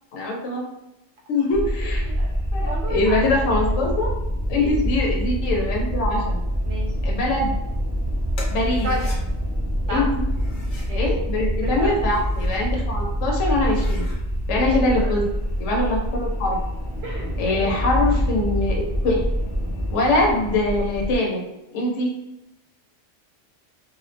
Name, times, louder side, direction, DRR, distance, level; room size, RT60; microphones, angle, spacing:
voice 1, 0.1-0.6 1.3-2.1 2.5-4.1 4.5-6.4 7.0-7.5 8.5-8.9 9.9-10.1 10.9-14.0 14.5-15.2 15.6-16.6 17.4-18.8 19.0-19.2 19.9-21.5 21.7-22.1, left 2 dB, 75° left, -1 dB, 0.9 m, -23 dB
sound 1, 1.5-21.2, equal, 10° right, 0.4 m, -25 dB
voice 2, 2.6-3.3 4.5-4.7 6.6-6.9 8.7-9.2 9.9-10.0 10.9-11.0 11.6-12.0 14.5-15.1 17.0-17.7, right 1 dB, 60° right, -2 dB, 1.0 m, -31 dB
sound 2, 8.3-9.2 10.3-11.0 11.9-12.6 13.1-13.2 13.5-14.2, left 2 dB, 50° left, 0.7 m, -42 dB
2.4 x 2.1 x 2.5 m, 0.90 s
omnidirectional pair, 1.3 m